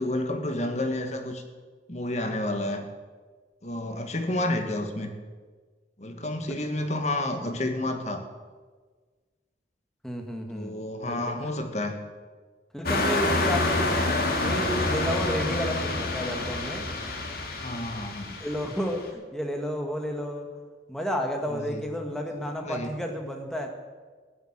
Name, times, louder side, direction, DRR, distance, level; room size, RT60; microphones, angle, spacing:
voice 1, 0.0-1.4 1.9-2.9 3.6-5.1 6.0-8.2 10.5-12.0 17.6-18.3 21.5-21.8 22.1-22.2 22.6-23.0, left 1 dB, 40° left, 5 dB, 1.7 m, -30 dB
voice 2, 10.0-10.7 11.1-11.3 12.7-14.1 14.4-16.9 18.4-20.5 20.9-23.7, equal, 5° left, 2 dB, 1.6 m, -31 dB
sound 1, 12.9-19.0, left 2 dB, 55° left, 2.3 m, -28 dB
16.0 x 8.3 x 8.9 m, 1.4 s
head